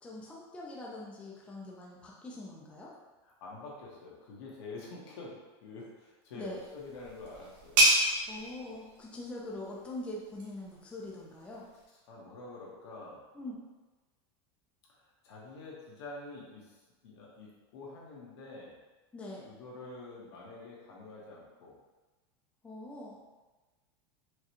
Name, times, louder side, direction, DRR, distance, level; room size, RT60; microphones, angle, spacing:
voice 1, 0.0-2.9 6.3-6.6 8.3-11.7 13.3-13.6 19.1-19.5 22.6-23.2, left 1 dB, 10° left, -3 dB, 0.4 m, -43 dB
voice 2, 3.2-7.8 12.1-13.2 14.9-16.7 17.0-18.8 19.5-21.8, left 3 dB, 85° left, -4 dB, 1.2 m, -47 dB
sound 1, 6.4-11.8, right 1 dB, 45° right, 1.0 m, -31 dB
4.6 x 2.3 x 2.9 m, 1.2 s
supercardioid pair, 160°, 13 cm